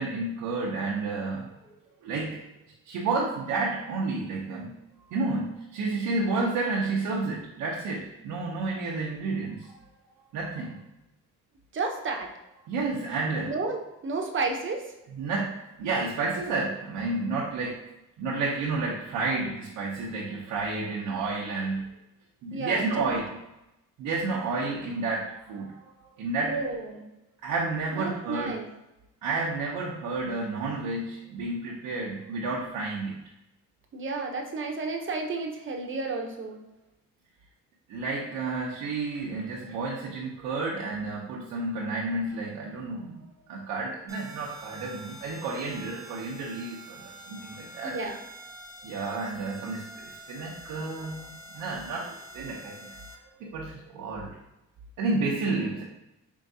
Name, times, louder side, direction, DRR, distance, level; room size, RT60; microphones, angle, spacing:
voice 1, 0.0-1.5 2.0-2.4 2.9-9.8 10.3-10.8 12.6-13.5 15.2-17.8 18.2-21.9 22.4-23.2 24.0-26.6 27.4-28.6 29.2-33.2 37.9-43.2 43.5-48.0 48.8-52.9 53.4-54.4 55.0-55.8, right 3 dB, 85° right, -4 dB, 0.7 m, -31 dB
voice 2, 11.7-12.3 13.4-14.9 22.5-23.1 26.4-27.1 27.9-28.6 33.9-36.6 47.8-48.2 51.9-52.0, right 3 dB, 40° right, 2 dB, 0.8 m, -32 dB
sound 1, 44.1-53.2, right 1 dB, 10° right, 0.4 m, -46 dB
4.6 x 3.1 x 2.7 m, 0.91 s
cardioid pair, 95°, 31 cm